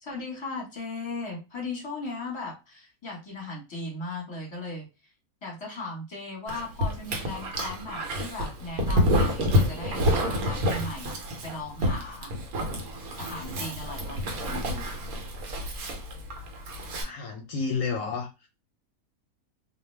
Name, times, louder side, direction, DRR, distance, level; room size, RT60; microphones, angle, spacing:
voice 1, 0.0-5.1 5.4-12.3 13.2-15.0, left 2 dB, 20° left, 1.0 m, -37 dB
Dog, 6.5-17.0, left 1 dB, 80° right, 1.1 m, -28 dB
voice 2, 17.0-18.5, left 5 dB, 70° left, 0.9 m, -31 dB
2.5 x 2.2 x 3.1 m
omnidirectional pair, 1.5 m